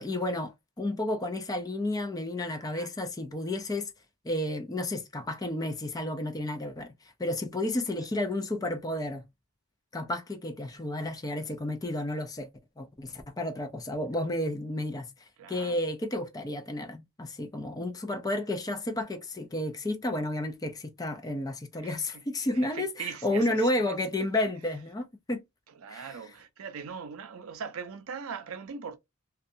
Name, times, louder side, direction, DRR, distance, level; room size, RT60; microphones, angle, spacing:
voice 1, 0.0-3.9 4.2-6.9 7.2-9.2 9.9-12.5 12.8-15.1 15.5-25.4 25.9-26.2, left 1 dB, 15° left, 0.4 m, -31 dB
voice 2, 15.4-15.7 21.8-21.9 22.5-24.0 25.8-29.0, right 6 dB, 70° right, 0.5 m, -40 dB
2.5 x 2.2 x 2.5 m
head